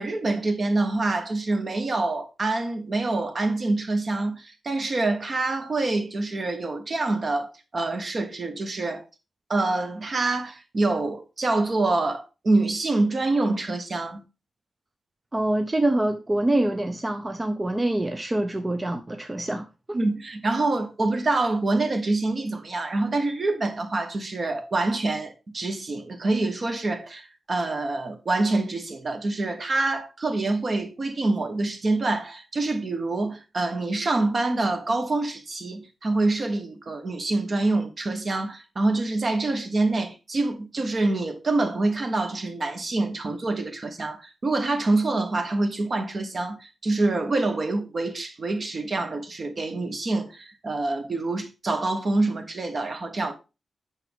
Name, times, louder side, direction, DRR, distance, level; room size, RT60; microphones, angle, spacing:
voice 1, 0.0-9.0 9.5-14.2 19.9-53.3, right 2 dB, 40° right, 1.3 m, -26 dB
voice 2, 15.3-20.0, right 1 dB, 20° right, 0.5 m, -25 dB
8.8 x 5.9 x 3.5 m
wide cardioid pair, 145°, 0 cm